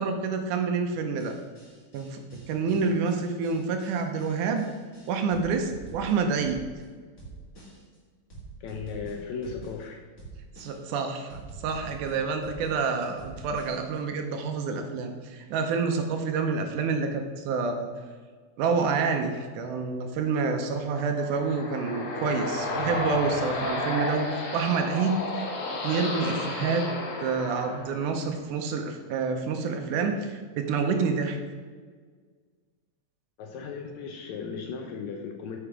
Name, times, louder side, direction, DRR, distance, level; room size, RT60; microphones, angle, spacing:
voice 1, 0.0-1.4 1.9-2.2 2.5-4.7 5.1-6.6 10.6-17.9 18.6-25.3 25.7-26.9 27.2-31.4, right 5 dB, 80° right, 5 dB, 2.2 m, -28 dB
sound 1, 1.2-6.8 7.2-8.0 8.3-9.8 10.2-11.0 11.3-14.0, right 3 dB, 30° left, 2.3 m, -46 dB
voice 2, 8.6-10.0 33.4-35.6, left 5 dB, 75° left, 3 dB, 1.7 m, -36 dB
sound 2, 20.8-28.4, left 2 dB, 55° left, 1.7 m, -32 dB
8.7 x 4.9 x 4.8 m, 1.5 s
omnidirectional pair, 3.8 m